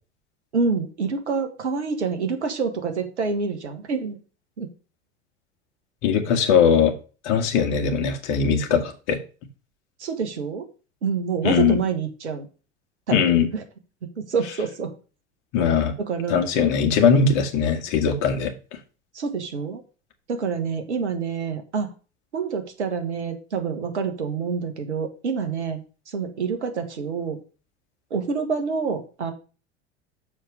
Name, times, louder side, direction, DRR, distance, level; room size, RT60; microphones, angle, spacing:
voice 1, 0.5-4.2 4.6-4.7 10.0-10.7 11.0-12.5 13.1-13.2 13.5-13.6 14.2-14.9 16.0-16.5 19.1-19.8 20.3-21.9 22.3-27.4 28.1-29.3, right 5 dB, 75° right, 6 dB, 1.6 m, -27 dB
voice 2, 6.0-6.9 7.2-9.2 11.4-11.8 13.1-13.5 15.5-15.9 16.3-18.5, left 6 dB, 50° left, 4 dB, 1.9 m, -20 dB
6.3 x 5.0 x 6.8 m, 0.35 s
figure-of-eight pair, 80°, 34 cm